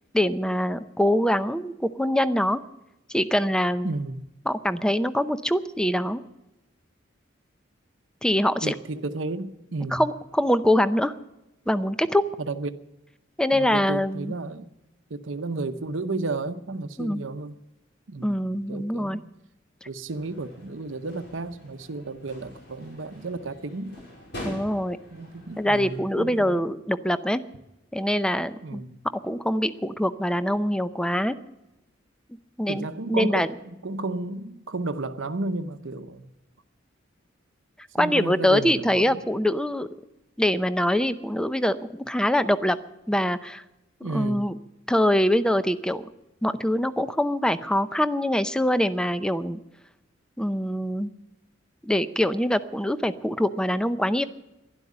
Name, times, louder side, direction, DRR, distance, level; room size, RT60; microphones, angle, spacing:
voice 1, 0.1-2.6 3.1-3.9 4.5-6.2 8.2-8.7 9.9-11.1 11.7-12.2 13.4-14.3 17.0-17.2 18.2-19.2 24.4-25.0 25.6-27.4 27.9-28.8 29.2-31.4 32.6-33.5 38.0-39.9 40.4-42.8 43.1-43.6 44.1-44.6 44.9-46.1 46.4-49.6 50.4-51.1 51.8-54.2, left 1 dB, 5° left, 13 dB, 0.6 m, -24 dB
voice 2, 3.8-4.2 8.6-10.1 12.4-12.8 13.5-14.7 15.1-17.6 18.1-18.4 18.7-19.2 19.8-24.0 25.1-26.6 28.6-29.0 32.7-36.3 38.0-39.2 44.0-44.4, right 3 dB, 75° right, 10 dB, 0.9 m, -33 dB
sound 1, 20.1-26.0, equal, 60° left, 4.8 m, -44 dB
12.0 x 11.5 x 8.6 m, 0.96 s
head